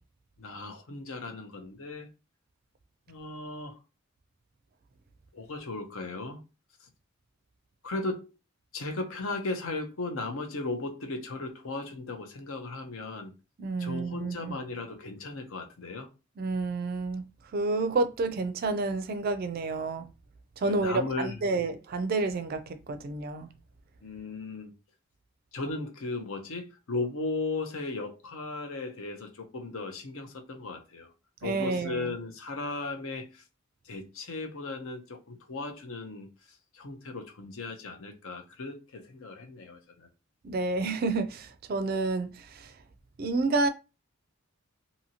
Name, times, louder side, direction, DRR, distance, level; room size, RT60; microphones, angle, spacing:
voice 1, 0.4-2.1 3.1-3.8 5.3-6.4 6.8-6.9 7.8-8.4 8.7-13.3 13.8-16.1 20.6-21.7 24.0-24.7 25.5-31.1 31.4-33.4 33.8-40.1, left 3 dB, 70° left, 0.7 m, -36 dB
voice 2, 13.6-14.6 16.4-17.2 17.5-20.1 20.6-23.5 31.4-32.1 40.4-42.7 43.2-43.7, right 3 dB, 45° right, 0.3 m, -29 dB
2.7 x 2.7 x 2.7 m
head